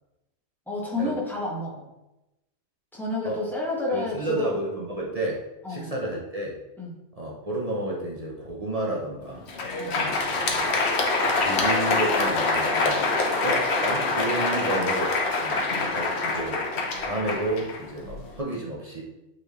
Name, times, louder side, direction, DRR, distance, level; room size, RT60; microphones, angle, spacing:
voice 1, 0.7-1.9 2.9-4.5 5.6-5.9 6.8-7.0 9.8-10.0 14.5-14.8, left 2 dB, ahead, -5 dB, 1.6 m, -30 dB
voice 2, 3.9-5.4 5.7-6.5 7.2-9.4 9.9-10.5 11.4-13.2 13.4-15.6 15.9-16.6 17.1-19.0, right 1 dB, 30° right, -3 dB, 0.9 m, -31 dB
Crowd, 9.4-18.3, left 3 dB, 60° left, 1.2 m, -25 dB
8.5 x 4.2 x 3.1 m, 0.95 s
omnidirectional pair, 1.3 m